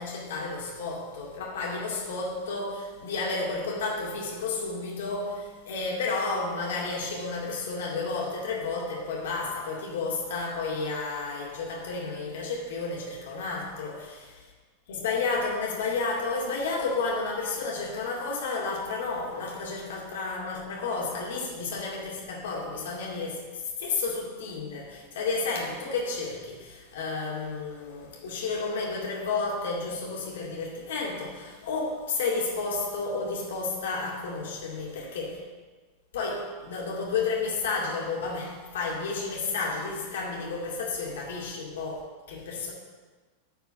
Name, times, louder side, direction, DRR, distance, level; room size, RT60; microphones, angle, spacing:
voice 1, 0.0-14.4 14.9-35.4 36.1-42.7, left 3 dB, 60° left, -2 dB, 2.2 m, -31 dB
9.4 x 4.6 x 7.7 m, 1.4 s
figure-of-eight pair, 90°, 0 cm